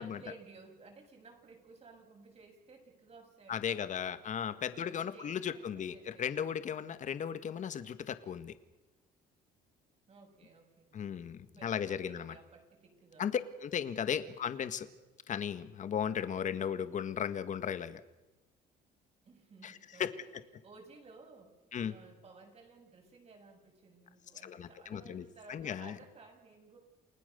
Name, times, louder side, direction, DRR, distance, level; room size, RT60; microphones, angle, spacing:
voice 1, 0.0-4.2 4.7-6.5 10.1-11.0 11.6-13.3 19.2-20.1 20.6-21.6 21.9-26.8, right 4 dB, 40° right, 3 dB, 7.7 m, -56 dB
voice 2, 3.5-8.6 10.9-12.3 13.2-14.9 15.3-18.0 19.6-20.1 21.7-22.0 24.4-26.0, left 8 dB, 45° left, 11 dB, 1.8 m, -36 dB
29.5 x 18.5 x 7.0 m, 1.1 s
cardioid pair, 110°, 17 cm